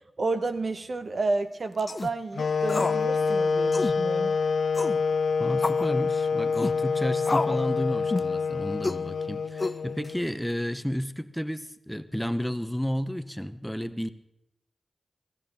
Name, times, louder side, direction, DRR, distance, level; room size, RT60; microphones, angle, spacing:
voice 1, 0.2-4.4, right 3 dB, 60° right, 9 dB, 1.0 m, -30 dB
sound 1, 1.8-2.1 2.7-3.0 3.3-3.4 3.7-4.0 4.7-5.0 5.6-5.9 6.5-6.8 7.3-7.6 8.1-8.4 8.8-9.0 9.6-10.1, left 2 dB, 40° left, 0.4 m, -29 dB
sound 2, 2.3-10.4, left 5 dB, 85° left, 0.6 m, -27 dB
voice 2, 5.4-14.1, equal, 5° left, 12 dB, 0.7 m, -31 dB
16.0 x 15.0 x 3.5 m, 0.82 s
cardioid pair, 50°, 0 cm